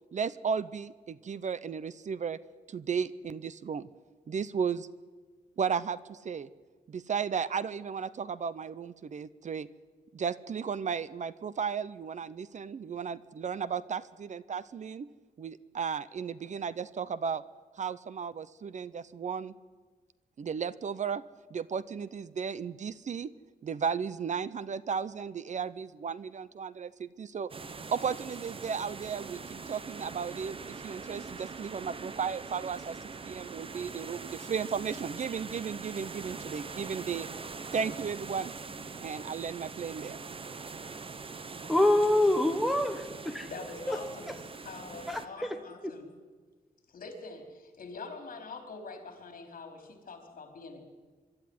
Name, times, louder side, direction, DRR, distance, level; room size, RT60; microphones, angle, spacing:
voice 1, 0.1-2.4 2.7-3.9 4.3-4.9 5.6-6.5 6.9-9.7 10.1-15.1 15.4-17.4 17.8-19.5 20.4-21.2 21.5-23.3 23.6-27.5 27.9-33.0 33.2-37.3 37.7-38.5 39.0-40.2, right 6 dB, 50° right, 17 dB, 0.6 m, -34 dB
sound 1, 27.5-45.3, right 4 dB, 35° right, 1.0 m, -43 dB
voice 2, 41.7-43.5 43.9-44.0 45.1-45.2 45.8-45.9, left 1 dB, ahead, 5 dB, 1.2 m, -25 dB
voice 3, 43.5-46.1 46.9-50.8, left 3 dB, 60° left, 5 dB, 3.9 m, -44 dB
24.5 x 12.5 x 9.6 m, 1.4 s
wide cardioid pair, 140°, 16 cm